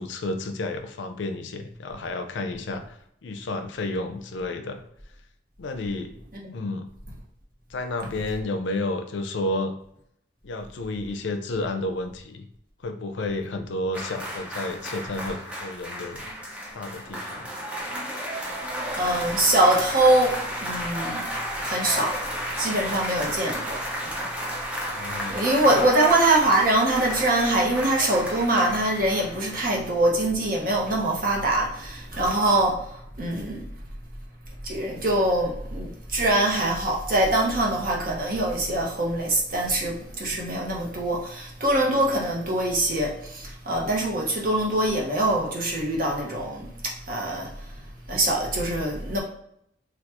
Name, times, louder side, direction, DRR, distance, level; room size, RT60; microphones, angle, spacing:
voice 1, 0.0-4.8 5.6-6.1 6.5-6.9 7.7-9.7 10.4-12.5 12.8-16.2 16.7-17.5 24.9-25.4 25.7-25.9, left 2 dB, 75° left, 6 dB, 0.5 m, -31 dB
sound 1, 13.9-30.2 30.5-30.7, equal, 5° right, 0.5 m, -33 dB
voice 2, 19.0-20.4 20.6-21.3 21.6-22.2 22.6-24.1 25.3-32.9 33.2-33.6 34.6-47.5 48.1-49.2, right 1 dB, 45° right, -2 dB, 0.9 m, -23 dB
3.4 x 2.3 x 2.9 m, 0.73 s
head